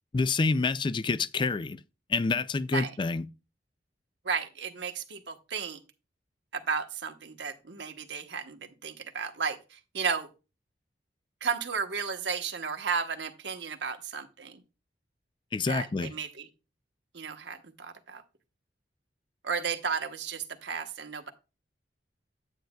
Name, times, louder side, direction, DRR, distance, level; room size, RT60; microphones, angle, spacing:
voice 1, 0.1-1.8 2.1-3.3 15.5-16.1, left 4 dB, 25° left, 0.4 m, -27 dB
voice 2, 4.2-5.8 6.5-9.6 9.9-10.3 11.4-14.5 15.7-16.4 17.1-18.2 19.4-21.3, right 6 dB, 80° right, 1.1 m, -33 dB
9.1 x 9.1 x 2.3 m
head